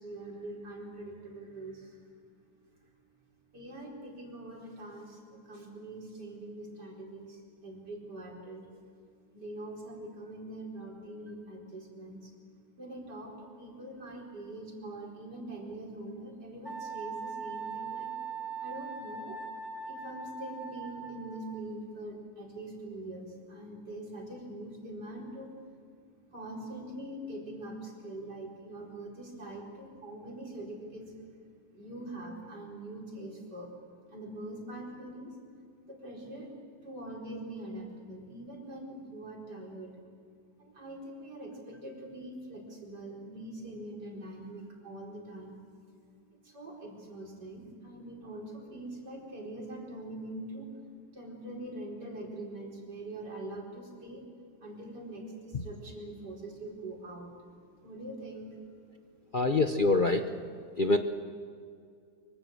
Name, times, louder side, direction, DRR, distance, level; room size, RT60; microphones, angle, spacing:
voice 1, 0.0-2.0 3.5-8.7 9.3-12.3 12.8-18.2 18.6-19.4 19.9-25.5 26.3-31.2 31.7-33.7 34.1-35.4 35.8-36.5 36.8-40.0 40.6-45.6 46.3-50.7 51.1-54.2 54.6-57.3 57.8-58.6, right 1 dB, 75° right, -1 dB, 4.9 m, -43 dB
Wind instrument woodwind instrument, 16.6-21.6, right 5 dB, ahead, 3.1 m, -40 dB
voice 2, 59.3-60.2 60.8-61.0, left 2 dB, 35° left, 6 dB, 0.9 m, -24 dB
24.5 x 24.5 x 7.8 m, 2.3 s
omnidirectional pair, 1.8 m